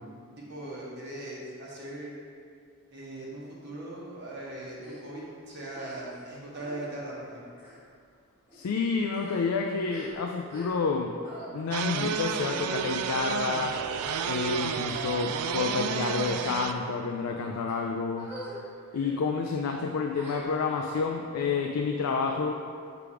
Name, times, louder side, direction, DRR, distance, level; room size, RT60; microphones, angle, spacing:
voice 1, 0.4-2.1 2.9-7.5, right 1 dB, 50° right, -6 dB, 1.0 m, -39 dB
sound 1, 4.8-5.0 5.7-6.2 6.5-6.8 7.5-7.8 8.5-8.7 9.0-11.0 11.2-11.5 12.3-12.6 13.0-13.4 13.9-14.8 15.4-15.7 16.2-16.9 17.5-17.7 18.2-18.6 18.9-19.1 20.1-20.8, equal, 10° right, 1.1 m, -45 dB
voice 2, 8.5-11.1 11.5-13.8 14.2-18.3 18.9-22.5, left 4 dB, 75° left, 1 dB, 0.4 m, -29 dB
sound 2, 11.7-16.7, right 7 dB, 80° right, 0.3 m, -31 dB
5.8 x 3.4 x 4.8 m, 2.3 s
head